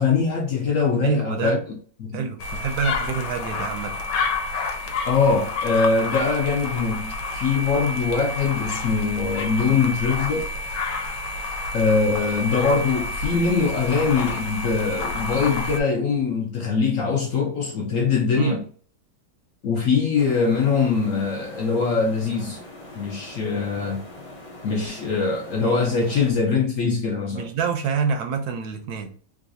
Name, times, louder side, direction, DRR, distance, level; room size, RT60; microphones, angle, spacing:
voice 1, 0.0-2.3 5.1-10.5 11.7-18.6 19.6-22.6 23.0-24.1 24.6-27.5, left 5 dB, 65° left, 0.8 m, -22 dB
voice 2, 1.0-1.5 2.1-4.0 18.4-18.6 27.3-29.1, right 6 dB, 70° right, 1.0 m, -26 dB
sound 1, 2.4-15.8, left 3 dB, 85° left, 1.3 m, -29 dB
sound 2, 20.2-26.3, left 1 dB, 30° left, 0.6 m, -42 dB
3.9 x 2.4 x 2.6 m
omnidirectional pair, 1.9 m